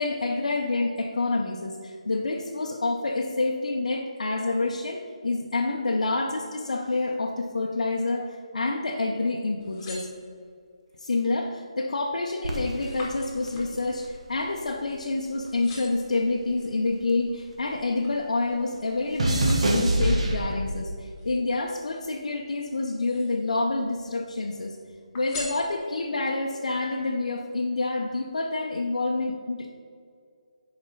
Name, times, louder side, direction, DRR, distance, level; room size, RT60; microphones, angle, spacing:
voice 1, 0.0-10.1 11.0-24.8 25.1-29.7, left 3 dB, 80° left, 0 dB, 0.7 m, -28 dB
sound 1, 9.4-10.7 11.3-11.7 12.1-15.2 15.5-16.2 16.8-18.3 18.7-20.2 21.1-22.3 22.8-23.6 23.9-24.7 25.1-26.2 26.7-26.8, left 2 dB, 20° left, 1.4 m, -44 dB
sound 2, 12.4-14.9 15.2-17.9 18.1-20.9 21.7-22.1, right 1 dB, 60° right, 1.3 m, -28 dB
6.4 x 5.0 x 5.4 m, 2.2 s
hypercardioid pair, 160°, 4 cm